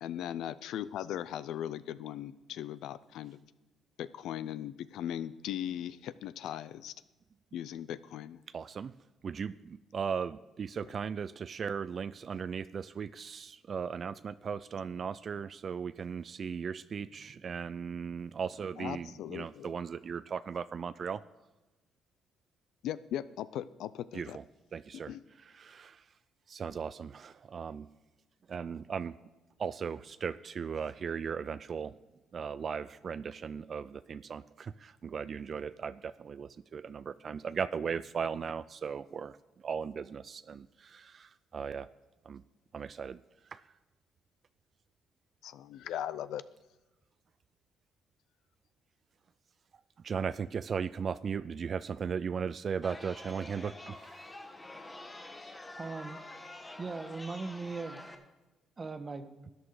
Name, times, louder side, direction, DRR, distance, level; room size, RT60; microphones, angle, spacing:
voice 1, 0.0-3.4 4.0-6.9 7.5-8.4 18.8-19.7 22.8-24.4 24.9-25.2 45.4-46.4, left 11 dB, 80° left, 16 dB, 0.5 m, -38 dB
voice 2, 8.5-8.9 9.2-21.2 24.1-24.4 24.7-25.1 25.4-26.0 26.5-27.9 28.5-29.1 29.6-32.0 32.3-39.4 39.6-41.9 42.3-42.4 42.7-43.2 43.5-43.6 50.0-54.3, right 6 dB, 50° right, 15 dB, 0.4 m, -37 dB
Chatter, 52.8-58.1, left 2 dB, 20° left, 1.5 m, -47 dB
voice 3, 55.8-56.2 56.8-58.0 58.8-59.3, right 4 dB, 30° right, 10 dB, 1.2 m, -39 dB
13.0 x 9.1 x 4.8 m, 1.1 s
cardioid pair, 80°, 0 cm